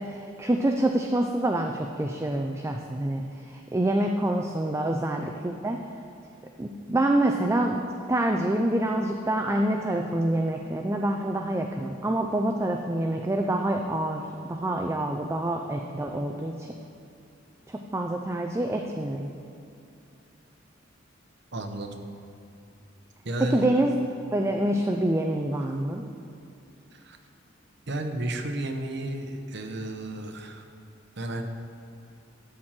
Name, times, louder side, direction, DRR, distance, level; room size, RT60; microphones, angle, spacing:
voice 1, 0.0-5.8 6.6-7.8 8.1-16.7 17.7-19.3 23.5-23.9 24.3-26.0, right 1 dB, 15° right, 3 dB, 0.4 m, -26 dB
voice 2, 21.5-22.0 23.2-23.8 25.5-25.8 26.9-27.2 27.9-30.7 31.2-31.4, right 1 dB, 60° right, 5 dB, 0.9 m, -32 dB
12.0 x 4.4 x 7.5 m, 2.7 s
head